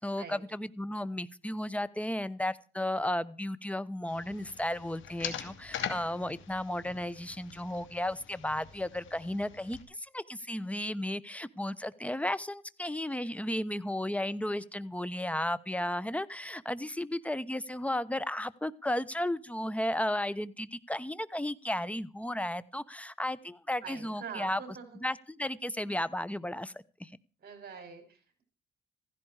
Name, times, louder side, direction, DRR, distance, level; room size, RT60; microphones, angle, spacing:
voice 1, 0.0-24.6 25.0-27.1, left 1 dB, 5° left, 18 dB, 0.9 m, -34 dB
sound 1, 4.1-9.8, left 9 dB, 75° left, 2.5 m, -43 dB
voice 2, 23.8-25.0 27.4-28.4, right 6 dB, 50° right, 5 dB, 7.3 m, -45 dB
16.0 x 15.5 x 4.9 m, 0.37 s
cardioid pair, 90°, 20 cm